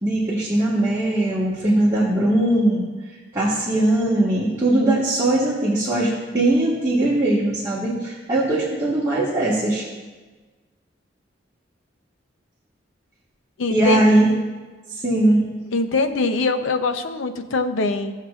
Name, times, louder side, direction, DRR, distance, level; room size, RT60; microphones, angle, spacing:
voice 1, 0.0-2.8 3.3-9.8 13.7-14.3 15.0-15.4, right 1 dB, 15° right, -10 dB, 1.5 m, -20 dB
voice 2, 13.6-14.0 15.7-18.1, left 3 dB, 90° left, 8 dB, 0.6 m, -23 dB
16.5 x 6.5 x 2.4 m, 1.3 s
head